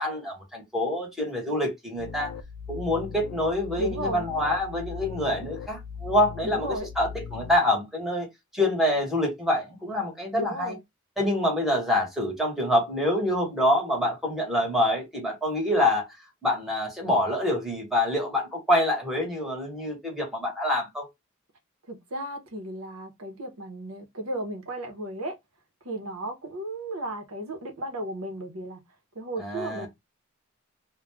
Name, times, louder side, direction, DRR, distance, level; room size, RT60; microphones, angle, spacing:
voice 1, 0.0-2.3 2.7-8.3 8.5-10.8 11.2-16.1 16.4-21.1 29.4-29.9, left 1 dB, ahead, 1.1 m, -26 dB
sound 1, 2.0-7.6, left 6 dB, 70° left, 0.4 m, -39 dB
voice 2, 3.8-4.3 6.4-6.9 10.3-10.8 21.9-25.4 25.8-28.8 29.1-29.9, right 1 dB, 70° right, 0.9 m, -34 dB
2.4 x 2.2 x 3.2 m
head